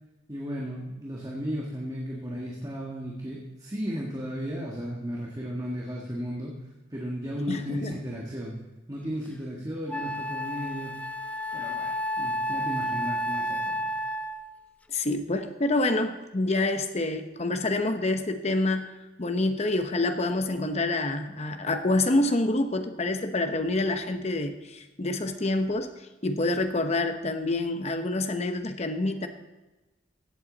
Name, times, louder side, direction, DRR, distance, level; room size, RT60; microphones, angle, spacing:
voice 1, 0.3-6.5 6.9-8.6 8.9-10.9 11.5-13.9, equal, 20° right, -3 dB, 1.6 m, -35 dB
voice 2, 7.5-8.0 14.9-29.3, left 2 dB, 35° left, 7 dB, 0.9 m, -27 dB
Wind instrument woodwind instrument, 9.3-9.4 9.9-14.5, equal, 10° left, 0.4 m, -31 dB
15.5 x 8.3 x 4.0 m, 1.1 s
head